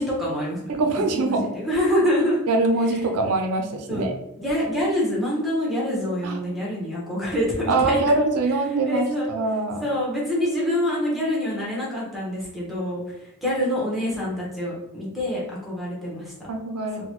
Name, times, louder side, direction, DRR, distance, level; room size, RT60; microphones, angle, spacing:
voice 1, 0.0-0.8 1.1-2.4 2.9-3.0 3.9-4.1 4.4-8.0 8.9-9.3 9.8-16.3 17.0-17.1, equal, ahead, -5 dB, 0.9 m, -26 dB
voice 2, 0.7-1.5 2.5-4.1 6.2-6.4 7.7-9.8 16.5-17.0, right 2 dB, 90° right, 4 dB, 0.5 m, -23 dB
3.8 x 2.2 x 2.9 m, 0.89 s
head